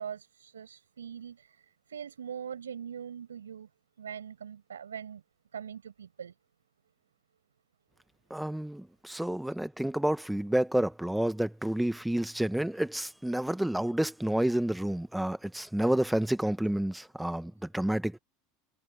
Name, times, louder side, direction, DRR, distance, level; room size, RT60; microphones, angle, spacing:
voice 1, 0.0-1.6 1.9-3.7 4.0-5.2 5.5-6.3, right 8 dB, 80° right, 7.8 m, -42 dB
voice 2, 8.3-18.2, right 1 dB, 5° right, 1.6 m, -29 dB
figure-of-eight pair, 75°, 0 cm